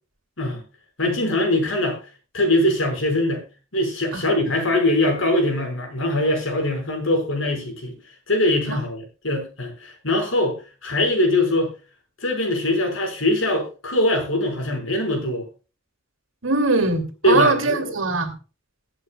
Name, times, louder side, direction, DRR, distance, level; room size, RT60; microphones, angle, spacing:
voice 1, 1.0-2.0 2.3-3.4 3.7-7.9 8.3-11.7 12.2-15.5 17.2-17.9, left 1 dB, 70° left, 3 dB, 5.2 m, -22 dB
voice 2, 16.4-18.3, right 3 dB, 80° right, 6 dB, 2.6 m, -21 dB
21.5 x 8.3 x 2.3 m, 0.32 s
head